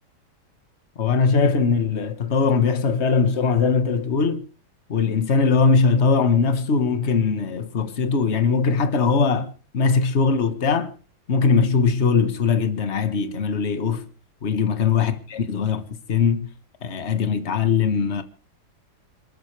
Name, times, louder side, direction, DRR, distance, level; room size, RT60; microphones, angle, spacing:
voice 1, 1.0-4.4 4.9-10.9 11.3-14.0 14.4-16.5 16.8-18.2, left 5 dB, 40° left, 1.6 m, -21 dB
27.5 x 13.5 x 3.3 m
omnidirectional pair, 1.8 m